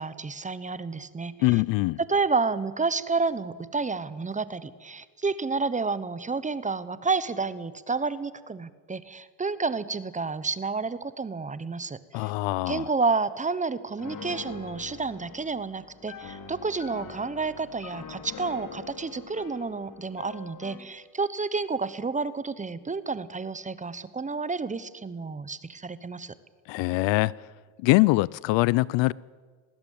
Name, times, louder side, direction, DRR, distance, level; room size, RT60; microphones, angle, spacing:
voice 1, 0.0-1.6 2.0-12.3 12.7-26.3, right 4 dB, 15° right, 16 dB, 1.0 m, -30 dB
voice 2, 1.4-2.0 12.1-12.9 26.7-27.3 27.8-29.1, left 21 dB, 60° left, 23 dB, 0.6 m, -23 dB
Piano, 14.0-20.9, left 6 dB, 40° left, 2.8 m, -43 dB
19.5 x 17.0 x 9.4 m, 1.5 s
supercardioid pair, 105°, 50 cm